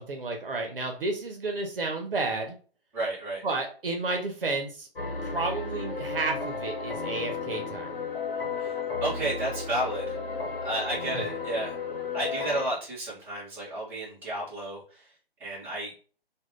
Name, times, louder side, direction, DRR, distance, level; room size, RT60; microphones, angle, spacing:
voice 1, 0.0-2.6 3.4-4.9 5.2-7.9 11.1-11.2, right 3 dB, 65° right, 3 dB, 1.0 m, -31 dB
voice 2, 2.9-3.4 8.6-8.7 9.0-10.2 10.6-11.8 12.1-15.0 15.4-15.9, right 1 dB, 5° right, -10 dB, 1.2 m, -32 dB
sound 1, 5.0-12.7, left 5 dB, 60° left, 1.1 m, -33 dB
3.0 x 2.5 x 3.8 m, 0.40 s
figure-of-eight pair, 145°, 31 cm